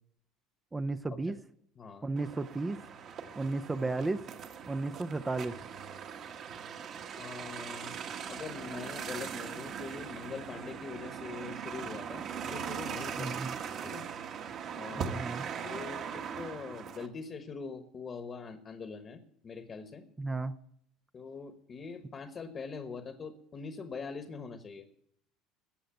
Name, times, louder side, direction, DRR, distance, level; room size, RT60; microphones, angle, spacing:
voice 1, 0.7-1.3 2.0-2.8 3.4-4.2 4.7-5.5 13.2-13.6 15.0-15.5 20.2-20.6, right 3 dB, 10° right, 11 dB, 0.5 m, -33 dB
voice 2, 1.8-2.1 7.2-8.0 8.3-13.4 13.8-14.1 14.7-15.2 15.6-20.1 21.1-24.9, left 5 dB, 25° left, 8 dB, 1.1 m, -43 dB
sound 1, 2.2-17.1, right 7 dB, 40° right, 1.2 m, -40 dB
14.5 x 8.0 x 9.2 m, 0.71 s
cardioid pair, 155°, 0 cm